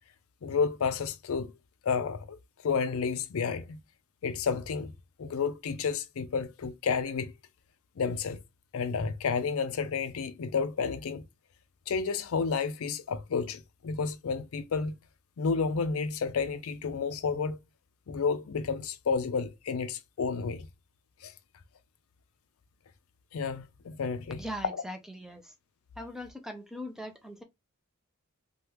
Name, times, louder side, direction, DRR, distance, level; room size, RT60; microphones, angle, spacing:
voice 1, 0.4-1.5 1.8-2.4 2.6-3.8 4.2-4.9 5.2-7.3 8.0-8.4 8.7-11.2 11.9-15.0 15.4-17.6 18.1-20.7 21.2-21.3 23.3-24.8, left 5 dB, 70° left, 0.4 m, -31 dB
voice 2, 24.3-25.6 26.0-27.4, equal, ahead, 0.4 m, -40 dB
3.3 x 2.3 x 2.9 m
head